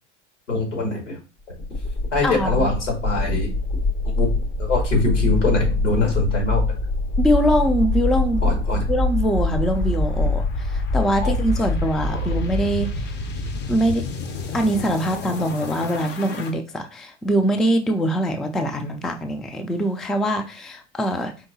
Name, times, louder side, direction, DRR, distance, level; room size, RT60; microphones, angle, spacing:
voice 1, 0.5-1.2 2.1-3.5 4.2-4.3 4.6-6.6 8.4-8.8 11.2-11.4 12.1-12.2, left 2 dB, 80° left, 0 dB, 2.1 m, -23 dB
sound 1, 1.6-16.5, left 2 dB, 30° left, 0.7 m, -25 dB
voice 2, 2.2-2.7 7.2-8.6 8.9-13.1 13.7-14.1 14.5-21.3, equal, ahead, 6 dB, 0.3 m, -23 dB
4.8 x 3.4 x 2.7 m, 0.31 s
figure-of-eight pair, 80°, 36 cm